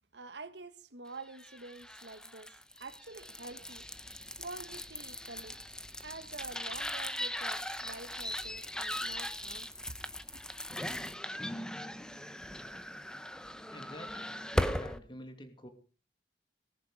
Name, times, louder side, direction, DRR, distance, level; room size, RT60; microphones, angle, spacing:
voice 1, 0.1-2.5 2.8-3.9 4.4-5.6 6.0-10.0 10.3-10.4, right 3 dB, 80° right, 1.6 m, -47 dB
sound 1, 1.3-15.0, left 1 dB, 5° left, 0.9 m, -39 dB
voice 2, 13.7-15.7, equal, 30° left, 2.7 m, -48 dB
19.0 x 11.5 x 4.9 m
head